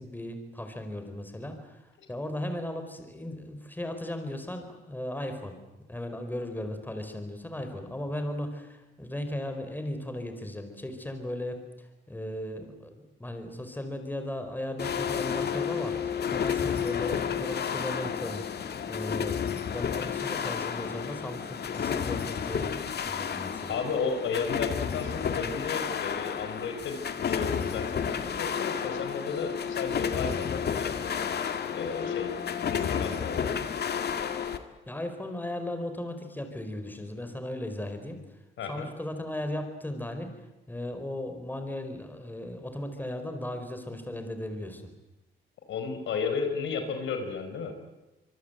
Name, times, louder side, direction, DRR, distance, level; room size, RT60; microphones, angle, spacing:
voice 1, 0.0-5.6 5.9-18.4 18.9-22.7 23.0-23.7 34.5-38.2 38.7-40.4 40.7-44.9, left 1 dB, 10° left, 7 dB, 4.8 m, -36 dB
sound 1, 14.8-34.6, left 7 dB, 55° left, 2.1 m, -31 dB
voice 2, 23.7-31.1 31.7-32.3 32.7-33.5 38.6-38.9 45.7-47.7, left 5 dB, 75° left, 6 dB, 4.7 m, -33 dB
25.5 x 23.0 x 9.2 m, 0.99 s
cardioid pair, 90°, 20 cm